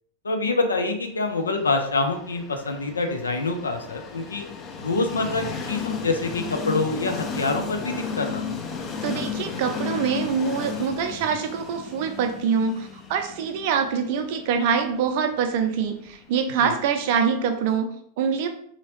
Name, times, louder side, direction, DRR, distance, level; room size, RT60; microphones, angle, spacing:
voice 1, 0.2-4.5 4.8-8.4 16.6-16.7, left 3 dB, 75° left, 5 dB, 0.5 m, -26 dB
Train, 1.5-17.4, left 5 dB, 25° left, 0.5 m, -34 dB
voice 2, 9.0-18.5, right 6 dB, 50° right, 6 dB, 0.5 m, -25 dB
3.8 x 2.8 x 3.0 m, 0.65 s
figure-of-eight pair, 90°, 0 cm